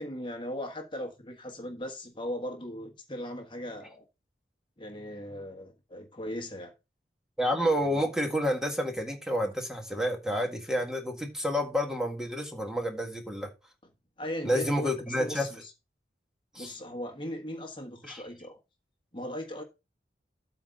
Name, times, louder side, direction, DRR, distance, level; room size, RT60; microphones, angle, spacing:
voice 1, 0.0-4.0 4.8-6.7 14.2-15.7 16.5-18.6 19.1-19.6, left 1 dB, 30° left, 1.4 m, -38 dB
voice 2, 7.4-13.5 14.4-15.5 16.5-16.7 18.1-18.2, equal, 5° right, 1.6 m, -29 dB
8.6 x 4.0 x 6.6 m
head